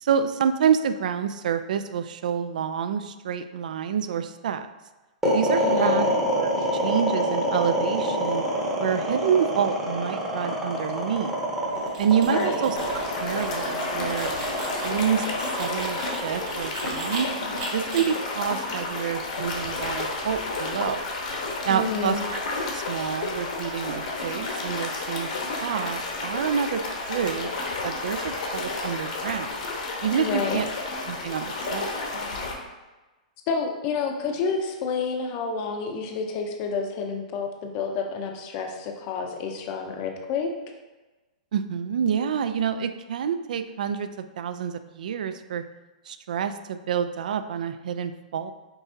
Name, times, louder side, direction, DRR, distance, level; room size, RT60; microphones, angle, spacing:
voice 1, 0.0-4.7 5.3-8.4 8.8-11.4 12.0-12.8 13.2-14.3 14.8-17.3 17.7-21.1 21.7-22.4 22.7-25.3 25.6-26.8 27.1-27.5 27.8-29.6 30.0-30.7 31.1-32.1 41.5-45.6 46.1-48.5, right 8 dB, 75° right, 10 dB, 0.3 m, -28 dB
sound 1, 5.2-17.5, equal, 10° right, 0.8 m, -26 dB
voice 2, 5.6-6.1 12.2-12.6 21.7-22.2 30.2-30.6 33.5-40.5, left 5 dB, 30° left, 3 dB, 0.5 m, -29 dB
sound 2, 11.7-17.2 17.6-18.0, right 3 dB, 50° right, 1.5 m, -39 dB
sound 3, 12.8-32.5, left 3 dB, 60° left, 1.0 m, -31 dB
5.5 x 3.4 x 2.7 m, 1.2 s
hypercardioid pair, 160°, 4 cm